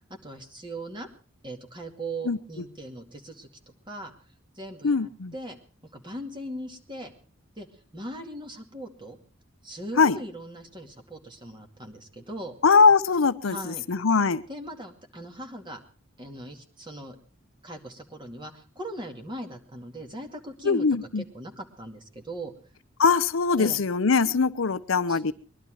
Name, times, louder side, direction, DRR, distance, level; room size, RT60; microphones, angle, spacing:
voice 1, 0.1-1.1 1.4-4.1 4.5-5.6 5.9-7.1 7.6-7.7 7.9-9.2 9.6-12.5 13.4-13.8 14.5-15.8 16.2-17.2 17.6-20.9 21.2-22.5 23.6-23.8 25.1-25.3, right 1 dB, 25° right, 4 dB, 2.3 m, -39 dB
voice 2, 4.8-5.3 10.0-10.2 12.6-14.4 20.6-21.2 23.0-25.3, left 5 dB, 85° left, 14 dB, 0.7 m, -21 dB
21.0 x 11.5 x 4.8 m, 0.40 s
head